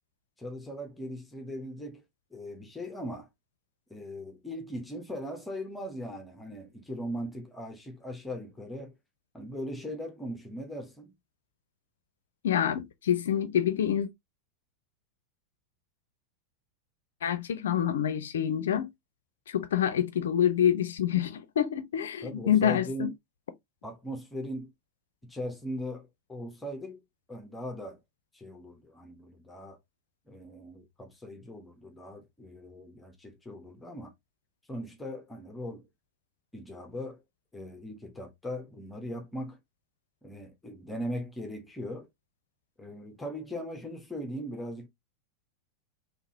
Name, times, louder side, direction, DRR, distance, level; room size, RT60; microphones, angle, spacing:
voice 1, 0.4-2.0 2.3-3.3 3.9-8.9 9.3-11.1 22.2-23.1 23.8-24.7 25.2-27.0 27.3-28.0 28.3-29.8 30.3-34.1 34.7-35.9 36.5-37.2 37.5-39.6 40.2-42.1 42.8-44.9, equal, 10° left, 0.9 m, -39 dB
voice 2, 12.4-14.1 17.2-18.9 19.5-23.1, left 9 dB, 65° left, 0.5 m, -27 dB
3.8 x 3.0 x 2.8 m
figure-of-eight pair, 90°, 0 cm